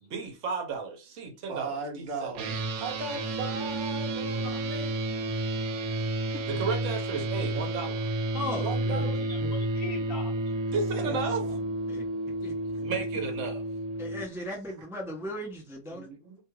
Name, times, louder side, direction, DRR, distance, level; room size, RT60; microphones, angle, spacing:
voice 1, 0.0-2.3 6.5-8.1 10.7-11.4 12.8-13.6 15.9-16.4, right 4 dB, 65° right, 1.0 m, -34 dB
voice 2, 1.5-4.9 8.5-9.3 11.0-11.6 12.4-12.5, right 3 dB, 40° right, 0.8 m, -37 dB
sound 1, 2.3-14.2, right 2 dB, 90° right, 1.1 m, -31 dB
voice 3, 4.1-4.7 9.2-10.6 12.4-12.5, left 3 dB, 55° left, 0.9 m, -43 dB
voice 4, 8.3-9.5 11.0-11.2 11.9-12.0 12.4-12.5 14.0-16.1, left 1 dB, 5° right, 0.3 m, -37 dB
2.8 x 2.3 x 3.0 m
omnidirectional pair, 1.4 m